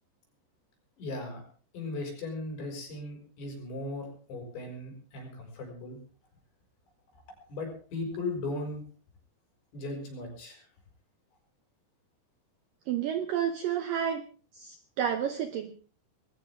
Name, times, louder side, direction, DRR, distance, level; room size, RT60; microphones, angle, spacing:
voice 1, 1.0-1.4 1.7-6.0 7.5-8.8 9.7-10.7, left 2 dB, 70° left, 2 dB, 8.2 m, -37 dB
voice 2, 12.9-14.3 14.5-15.8, right 9 dB, 80° right, 9 dB, 2.0 m, -30 dB
20.5 x 17.5 x 3.6 m, 0.39 s
omnidirectional pair, 5.3 m